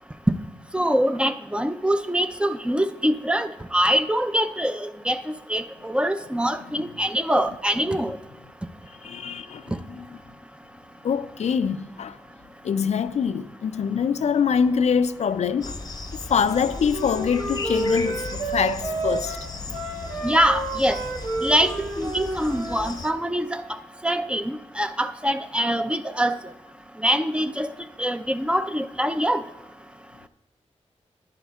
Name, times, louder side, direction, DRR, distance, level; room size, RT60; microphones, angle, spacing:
voice 1, 0.7-5.2 5.5-8.2 20.2-21.0 21.4-23.6 24.0-26.3 27.0-27.7 28.0-29.4, equal, 10° right, 0.5 m, -24 dB
voice 2, 9.0-10.0 11.0-12.2 12.6-15.8 16.3-19.9 22.9-23.0, left 6 dB, 70° left, 0.4 m, -25 dB
sound 1, 15.6-23.1, left 3 dB, 35° left, 0.7 m, -37 dB
Wind instrument woodwind instrument, 16.5-22.9, right 2 dB, 70° right, 2.3 m, -30 dB
10.5 x 10.5 x 2.3 m
cardioid pair, 55°, 12 cm